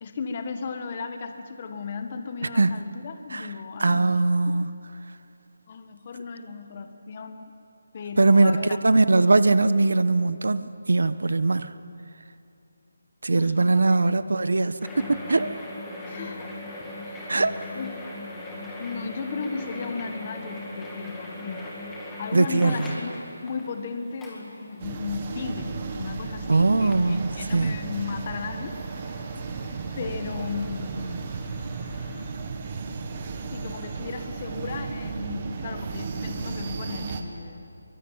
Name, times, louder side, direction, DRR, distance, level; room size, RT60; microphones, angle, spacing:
voice 1, 0.0-4.6 5.7-7.5 7.9-8.8 13.3-14.2 16.1-16.5 17.1-17.3 17.7-17.9 18.8-21.7 22.2-28.8 30.0-31.2 33.5-37.7, left 5 dB, 25° left, 7 dB, 1.3 m, -35 dB
voice 2, 3.8-4.7 8.2-8.6 8.8-11.7 13.2-15.5 17.3-17.6 22.3-22.9 26.5-27.8, right 3 dB, 70° right, 14 dB, 1.2 m, -21 dB
sound 1, 14.8-32.3, left 2 dB, 5° left, 2.1 m, -40 dB
sound 2, 24.8-37.2, right 4 dB, 20° right, 1.4 m, -34 dB
24.0 x 23.0 x 8.9 m, 2.6 s
hypercardioid pair, 175°, 0 cm